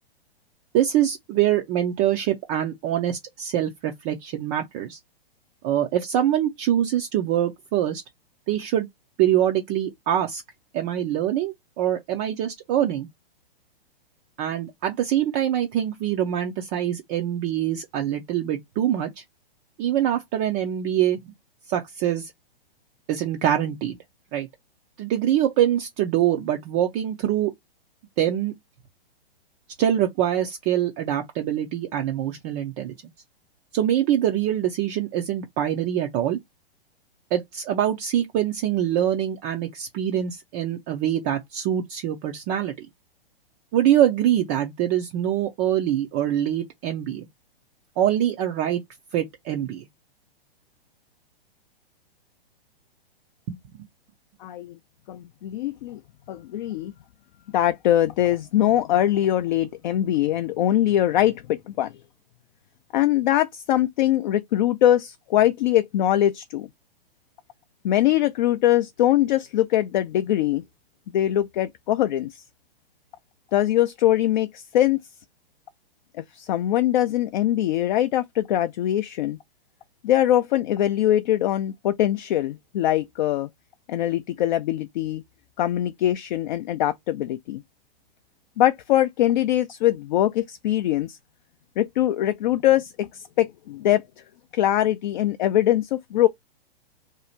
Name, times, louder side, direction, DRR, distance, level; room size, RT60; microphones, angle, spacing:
voice 1, 0.7-5.0 5.6-8.0 8.5-8.9 9.2-10.4 10.7-13.1 14.4-19.2 19.8-21.3 21.7-22.3 23.1-24.0 24.3-24.5 25.0-27.5 28.2-28.5 29.8-32.9 33.7-36.4 37.3-42.9 43.7-47.3 48.0-48.8 49.1-49.8 53.5-53.6, right 11 dB, 20° right, 0.3 m, -24 dB
voice 2, 54.4-54.8 55.1-56.0 56.3-56.9 57.5-61.9 62.9-66.7 67.8-70.6 71.1-72.4 73.5-75.0 76.2-79.4 80.0-83.5 83.9-85.2 85.6-87.6 88.6-91.2 91.8-94.0 94.5-96.3, left 12 dB, 50° left, 0.4 m, -22 dB
2.7 x 2.4 x 4.2 m
hypercardioid pair, 125°, 30 cm